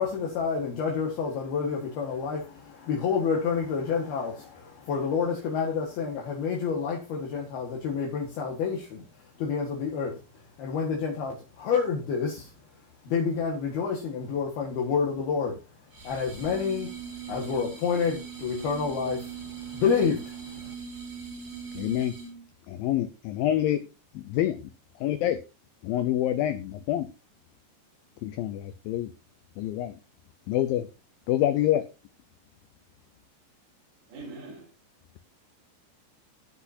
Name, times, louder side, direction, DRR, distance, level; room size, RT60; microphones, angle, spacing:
voice 1, 0.0-12.5 13.1-16.9 17.3-20.7, left 6 dB, 65° left, 3.5 m, -29 dB
sound 1, 15.9-22.4, right 7 dB, 50° right, 0.7 m, -40 dB
voice 2, 21.7-22.1 22.7-23.8 24.2-24.6 25.0-25.4 25.8-27.1 28.2-29.1 29.6-30.0 30.5-30.9 31.3-31.9, left 12 dB, 85° left, 2.0 m, -26 dB
voice 3, 34.1-34.7, right 3 dB, 75° right, 5.6 m, -42 dB
18.0 x 6.2 x 2.8 m
omnidirectional pair, 5.1 m